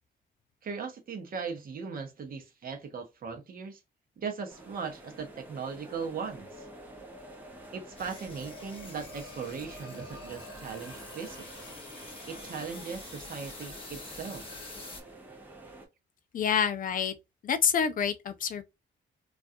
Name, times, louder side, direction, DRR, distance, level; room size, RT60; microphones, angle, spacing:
voice 1, 0.6-3.8 4.2-6.7 7.7-11.6 12.3-14.5, right 5 dB, 50° right, 0.8 m, -38 dB
sound 1, 4.5-15.9, right 1 dB, 10° right, 0.7 m, -48 dB
sound 2, 8.0-15.0, left 2 dB, 25° left, 0.8 m, -46 dB
voice 2, 16.3-17.1 17.4-18.6, left 7 dB, 45° left, 0.4 m, -27 dB
2.4 x 2.3 x 2.6 m
wide cardioid pair, 160°, 20 cm